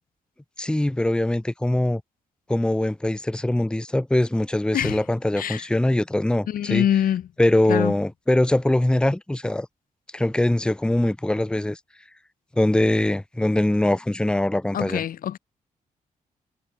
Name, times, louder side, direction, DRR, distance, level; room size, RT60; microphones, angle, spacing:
voice 1, 0.6-2.0 2.5-6.9 7.4-9.7 10.1-11.8 12.6-15.0, left 1 dB, 5° left, 0.8 m, -22 dB
voice 2, 6.5-7.2 7.7-7.9 14.7-15.4, left 10 dB, 75° left, 1.0 m, -24 dB
cardioid pair, 100°, 15 cm